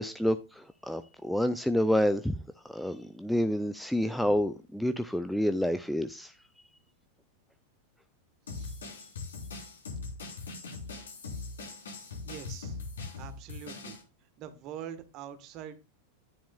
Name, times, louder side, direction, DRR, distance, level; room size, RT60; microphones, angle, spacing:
voice 1, 0.0-2.4 2.7-6.3, equal, ahead, 0.4 m, -28 dB
sound 1, 8.5-14.0, left 3 dB, 65° left, 3.7 m, -41 dB
voice 2, 12.2-12.8 13.2-14.0 14.4-15.8, right 9 dB, 40° right, 1.3 m, -44 dB
10.0 x 9.9 x 2.3 m
figure-of-eight pair, 90°, 0 cm